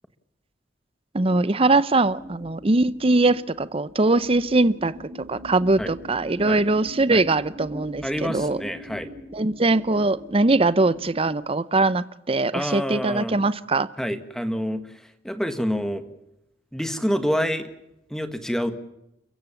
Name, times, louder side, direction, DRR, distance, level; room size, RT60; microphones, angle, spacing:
voice 1, 1.1-4.9 5.3-8.6 9.3-13.9, right 2 dB, 30° right, 17 dB, 0.7 m, -21 dB
sound 1, 2.0-11.4, equal, 75° right, 4.4 m, -42 dB
voice 2, 8.0-9.1 12.5-13.3 14.0-16.0 16.7-17.7 18.1-18.7, equal, 5° left, 9 dB, 1.6 m, -27 dB
30.0 x 15.0 x 7.1 m, 0.86 s
head